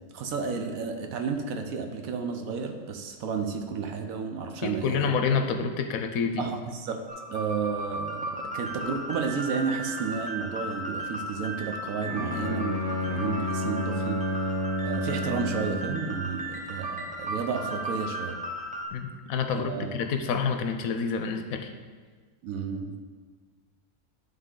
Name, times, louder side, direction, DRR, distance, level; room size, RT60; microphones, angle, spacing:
voice 1, 0.1-5.2 6.4-7.0 7.3-14.2 14.8-18.4 19.5-20.0 22.4-23.0, right 5 dB, 80° right, 5 dB, 1.2 m, -32 dB
voice 2, 4.6-6.4 18.9-21.7, left 5 dB, 85° left, 6 dB, 1.1 m, -28 dB
sound 1, 7.1-18.9, right 1 dB, 10° right, 0.5 m, -36 dB
Bowed string instrument, 12.0-16.1, left 2 dB, 60° left, 1.2 m, -31 dB
11.0 x 3.8 x 3.8 m, 1.5 s
omnidirectional pair, 1.5 m